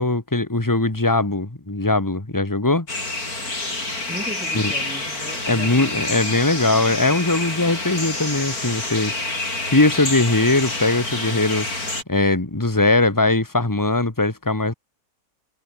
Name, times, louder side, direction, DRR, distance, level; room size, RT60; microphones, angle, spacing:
voice 1, 0.0-2.9 4.5-4.7 5.5-9.1 9.7-11.7 12.1-14.7, left 2 dB, 15° left, 2.0 m, -20 dB
sound 1, 2.9-12.0, left 2 dB, 85° left, 6.5 m, -28 dB
voice 2, 4.1-6.2, equal, 5° right, 7.5 m, -36 dB
omnidirectional pair, 1.5 m